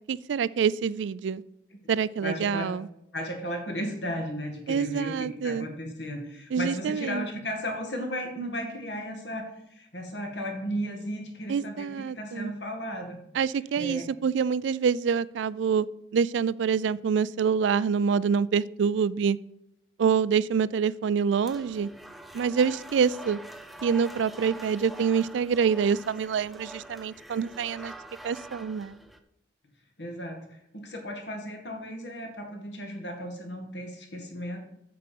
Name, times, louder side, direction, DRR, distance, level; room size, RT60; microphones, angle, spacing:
voice 1, 0.1-1.4 1.9-2.9 4.7-5.7 6.5-7.3 11.5-12.5 13.3-15.9 16.1-19.4 20.0-21.9 22.3-23.4 23.8-27.9 28.2-29.0, right 6 dB, 75° right, 20 dB, 0.3 m, -26 dB
voice 2, 2.2-2.7 3.1-13.2 13.8-14.0 30.0-34.6, equal, 65° left, 3 dB, 2.1 m, -35 dB
sound 1, 21.4-29.2, right 1 dB, ahead, 0.5 m, -45 dB
8.4 x 6.6 x 5.2 m, 0.80 s
head